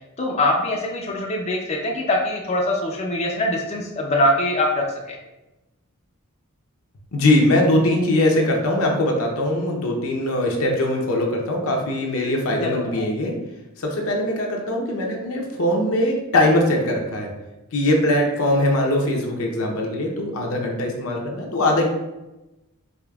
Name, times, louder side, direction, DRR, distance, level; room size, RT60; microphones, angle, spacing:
voice 1, 0.2-5.2 12.6-12.8, left 1 dB, 30° left, -1 dB, 0.5 m, -23 dB
voice 2, 7.1-13.3 13.8-17.3 17.7-21.8, left 1 dB, 70° left, 1 dB, 0.7 m, -21 dB
4.9 x 2.8 x 2.3 m, 1.0 s
head